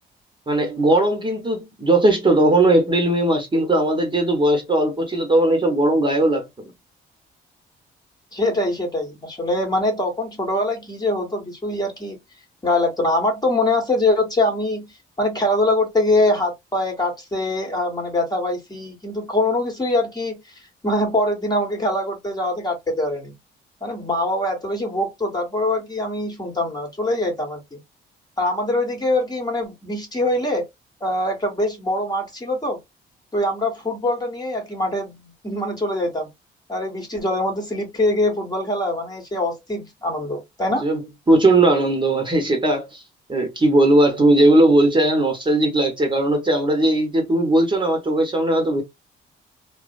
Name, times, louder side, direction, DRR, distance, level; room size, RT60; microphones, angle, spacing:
voice 1, 0.5-6.5 40.8-43.0 43.3-48.8, right 1 dB, 25° right, 0.9 m, -18 dB
voice 2, 8.3-12.2 12.6-14.9 15.2-20.4 20.8-23.3 23.8-27.8 28.4-30.7 31.0-32.8 33.3-36.3 36.7-40.9, left 1 dB, 20° left, 1.1 m, -23 dB
2.6 x 2.0 x 2.4 m
cardioid pair, 90°, 20 cm